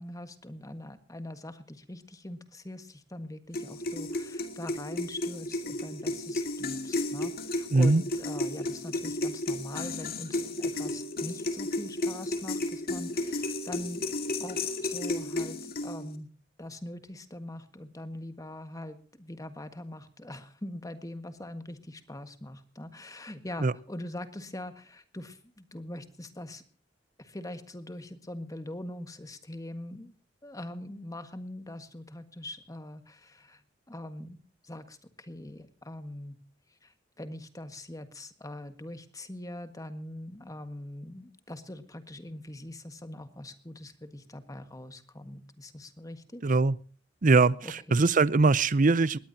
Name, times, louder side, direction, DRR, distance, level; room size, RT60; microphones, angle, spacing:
voice 1, 0.0-14.0 14.4-16.3 16.6-26.6 27.2-30.1 30.4-33.6 33.9-34.4 34.6-36.4 36.8-46.5 47.6-48.1, left 1 dB, 20° left, 9 dB, 1.6 m, -42 dB
sound 1, 3.5-16.2, left 2 dB, 55° left, 2.2 m, -33 dB
voice 2, 7.7-8.0 23.6-23.7 46.4-46.8 47.2-49.2, right 3 dB, 45° right, 19 dB, 0.6 m, -22 dB
21.0 x 18.0 x 2.8 m, 0.41 s
head